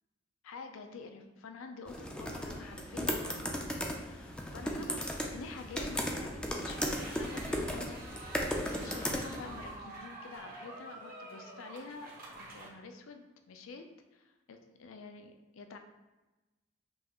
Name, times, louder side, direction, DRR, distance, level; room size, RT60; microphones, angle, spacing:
voice 1, 0.4-8.1 8.3-13.8 14.1-15.8, left 4 dB, 90° left, 6 dB, 0.4 m, -48 dB
sound 1, 1.9-9.8, equal, 5° left, 0.3 m, -36 dB
sound 2, 6.7-12.7, right 2 dB, 50° right, 0.9 m, -48 dB
5.3 x 2.4 x 2.9 m, 1.1 s
head